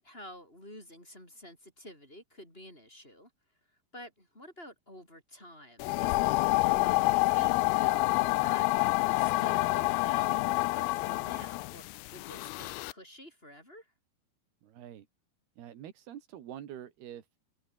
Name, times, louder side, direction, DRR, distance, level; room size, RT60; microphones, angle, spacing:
voice 1, 0.0-3.3 3.7-13.9, equal, 15° left, 8.0 m, -50 dB
sound 1, 5.8-12.9, left 23 dB, 85° left, 2.4 m, -28 dB
voice 2, 14.6-15.1 15.6-17.3, right 10 dB, 90° right, 4.1 m, -45 dB
omnidirectional pair, 4.4 m